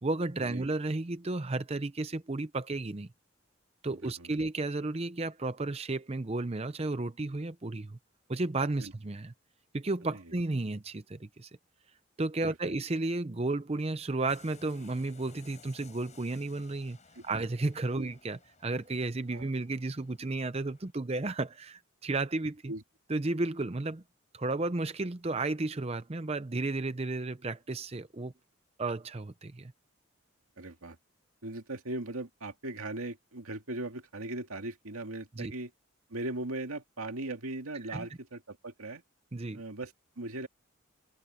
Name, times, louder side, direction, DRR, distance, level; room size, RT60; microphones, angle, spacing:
voice 1, 0.0-3.1 3.8-8.0 8.3-9.3 9.7-11.5 12.2-17.0 17.2-22.7 23.1-24.0 24.3-28.3 28.8-29.7 35.4-35.5 37.9-38.1 39.3-39.6, right 2 dB, 30° right, 0.6 m, -33 dB
voice 2, 3.9-4.4 8.8-8.9 10.1-10.3 12.4-12.7 17.2-17.3 17.9-18.1 19.3-19.5 22.7-22.8 30.6-31.0 31.4-35.7 36.1-39.0 39.5-40.5, right 2 dB, 90° right, 2.3 m, -39 dB
sound 1, 14.3-20.9, left 4 dB, 35° left, 7.5 m, -58 dB
head